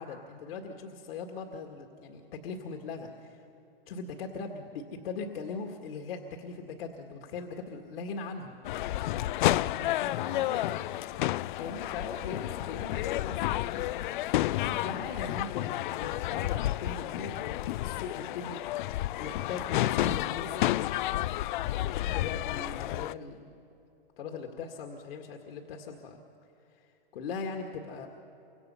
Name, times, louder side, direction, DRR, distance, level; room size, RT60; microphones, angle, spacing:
voice 1, 0.0-3.4 3.9-9.2 9.5-10.7 11.6-18.8 19.1-20.9 21.8-23.4 24.2-26.2 26.7-26.9 27.1-28.1, left 4 dB, 70° left, 3 dB, 2.0 m, -40 dB
sound 1, 8.6-23.1, left 15 dB, 55° left, 0.5 m, -31 dB
28.5 x 25.5 x 5.6 m, 2.9 s
hypercardioid pair, 130°, 30 cm